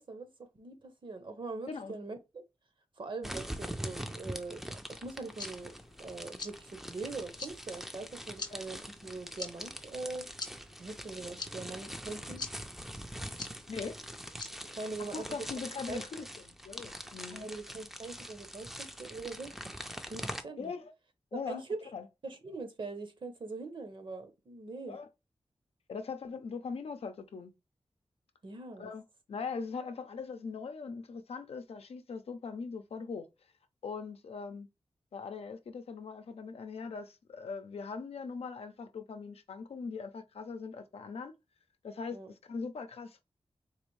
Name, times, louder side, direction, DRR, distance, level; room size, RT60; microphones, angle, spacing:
voice 1, 0.0-2.4 3.0-5.7 6.0-10.3 10.8-12.4 14.7-15.3 15.9-16.0 17.3-20.7 21.3-21.7 22.2-25.0 28.4-28.9 42.1-42.3, right 3 dB, 55° right, 0.8 m, -42 dB
sound 1, 3.2-20.4, equal, 5° right, 0.4 m, -43 dB
sound 2, 5.1-15.3, left 4 dB, 45° left, 0.6 m, -48 dB
voice 2, 15.1-17.5 20.6-20.9 21.3-21.6 21.9-22.1 24.9-25.1 25.9-27.5 28.8-29.0 29.3-33.3 33.8-34.7 35.1-41.3 41.8-42.2 42.4-43.2, left 5 dB, 90° left, 0.5 m, -41 dB
4.0 x 2.6 x 3.1 m
wide cardioid pair, 95°, 10 cm